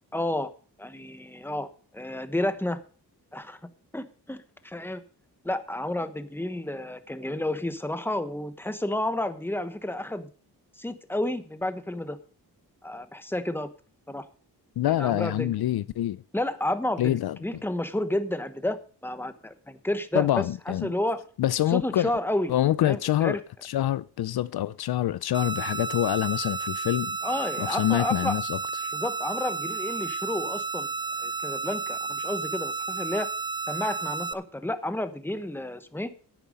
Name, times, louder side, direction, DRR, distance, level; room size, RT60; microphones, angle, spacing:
voice 1, 0.1-0.5 0.8-1.7 1.9-2.8 3.3-3.6 3.9-5.0 5.4-10.3 10.8-12.2 12.8-13.7 14.1-14.3 14.9-15.5 16.3-21.2 21.7-22.5 22.8-23.4 27.2-28.3 28.9-30.9 31.2-33.3 33.7-36.1, left 1 dB, 5° left, 1.1 m, -31 dB
voice 2, 14.8-16.2 17.0-17.4 20.1-20.9 21.4-22.1 22.5-27.2 27.6-28.9, left 13 dB, 70° left, 0.5 m, -26 dB
sound 1, 25.3-34.3, right 4 dB, 10° right, 0.6 m, -32 dB
10.5 x 8.7 x 5.3 m
cardioid pair, 95°, 39 cm